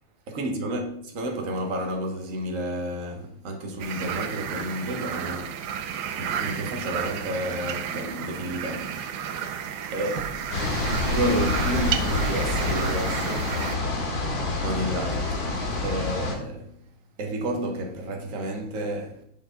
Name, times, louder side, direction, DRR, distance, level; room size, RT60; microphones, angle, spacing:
voice 1, 0.3-5.9 6.2-9.5 9.9-10.4 11.1-13.6 14.6-16.8 17.2-19.2, right 1 dB, 45° right, 1.5 m, -31 dB
sound 1, 3.8-13.8, right 8 dB, 65° right, 1.1 m, -32 dB
sound 2, 10.5-16.3, left 3 dB, 75° left, 2.5 m, -27 dB
8.4 x 6.2 x 3.9 m
omnidirectional pair, 2.2 m